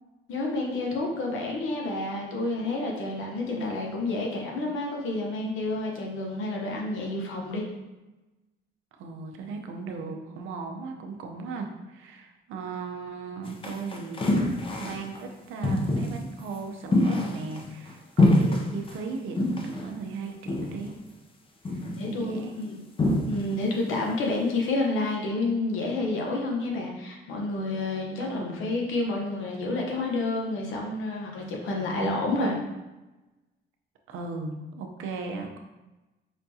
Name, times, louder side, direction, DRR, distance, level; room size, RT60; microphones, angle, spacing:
voice 1, 0.3-7.7 21.9-22.8 23.2-32.6, left 2 dB, 80° left, -1 dB, 0.9 m, -29 dB
voice 2, 8.9-14.5 14.8-20.9 21.7-21.8 22.1-22.5 28.2-28.7 34.1-35.6, right 4 dB, 85° right, 3 dB, 0.6 m, -37 dB
sound 1, 13.4-15.2 15.6-16.2 16.9-17.9 18.2-18.9 19.4-19.9 20.5-20.9 21.6-22.1 23.0-23.6 23.9-24.1, left 1 dB, 25° left, 0.5 m, -25 dB
5.0 x 2.3 x 2.7 m, 1.1 s
cardioid pair, 90°, 20 cm